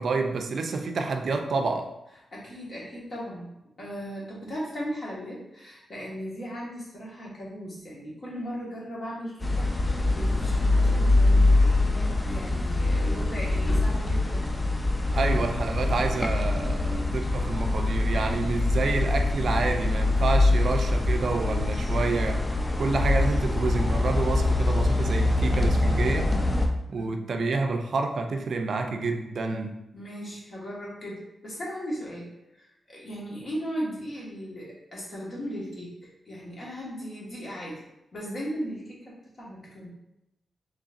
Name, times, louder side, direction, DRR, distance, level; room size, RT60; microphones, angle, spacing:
voice 1, 0.0-1.9 15.1-22.4 22.8-26.4 26.9-29.8, right 3 dB, 65° right, 4 dB, 0.4 m, -28 dB
voice 2, 2.3-3.5 3.8-14.5 26.9-27.3 29.9-37.8 38.1-39.9, equal, 55° left, -5 dB, 1.4 m, -37 dB
sound 1, 9.4-26.7, left 2 dB, 20° left, 0.4 m, -24 dB
3.9 x 3.2 x 2.5 m, 0.89 s
cardioid pair, 95°, 0 cm